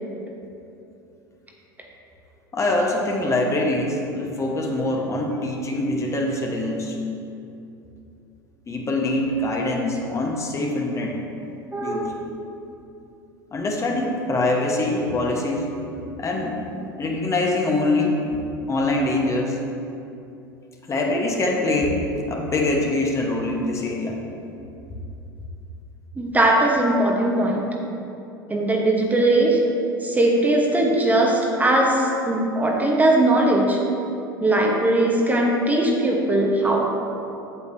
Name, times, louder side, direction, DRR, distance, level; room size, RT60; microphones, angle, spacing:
voice 1, 2.5-7.0 8.7-11.2 11.8-12.1 13.5-15.7 16.2-16.6 17.0-18.4 18.7-19.6 20.9-22.0 22.3-24.2, left 2 dB, 25° left, 0 dB, 1.1 m, -24 dB
voice 2, 11.7-12.1 26.2-27.7 28.5-29.6 30.0-33.8 34.4-36.8, right 1 dB, 15° right, -1 dB, 1.0 m, -19 dB
8.2 x 7.9 x 2.7 m, 2.8 s
hypercardioid pair, 80°, 12 cm